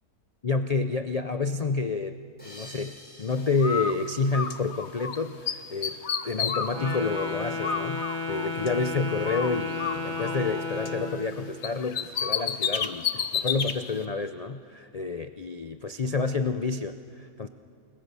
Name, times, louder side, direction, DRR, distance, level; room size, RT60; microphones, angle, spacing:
voice 1, 0.4-2.2 2.4-17.5, left 4 dB, 70° left, 9 dB, 0.3 m, -29 dB
sound 1, 2.4-5.5, equal, 5° left, 4.8 m, -50 dB
Bird, 3.6-5.2 5.5-8.9 9.2-11.3 11.6-13.8, left 7 dB, 50° left, 1.1 m, -31 dB
Wind instrument woodwind instrument, 6.7-11.3, left 3 dB, 60° right, 2.7 m, -33 dB
29.5 x 20.0 x 6.9 m, 2.3 s
omnidirectional pair, 1.6 m